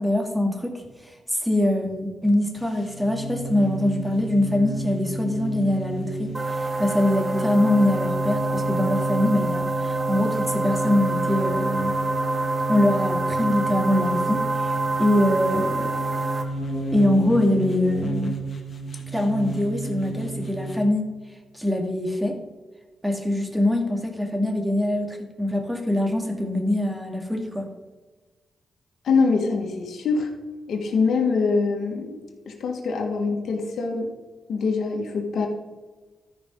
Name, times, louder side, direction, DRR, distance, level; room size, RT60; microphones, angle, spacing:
voice 1, 0.0-11.9 12.7-15.9 16.9-18.4 19.1-21.1 21.5-22.4 23.0-27.7, left 1 dB, 5° right, 3 dB, 2.1 m, -23 dB
sound 1, 2.6-20.8, right 2 dB, 45° left, 2.0 m, -31 dB
sound 2, 6.3-16.4, right 2 dB, 25° right, 1.7 m, -27 dB
voice 2, 29.0-30.3 30.7-32.2 32.5-34.1 34.5-35.5, left 4 dB, 70° left, 1 dB, 1.8 m, -24 dB
13.0 x 5.2 x 5.5 m, 1.3 s
cardioid pair, 75°, 0 cm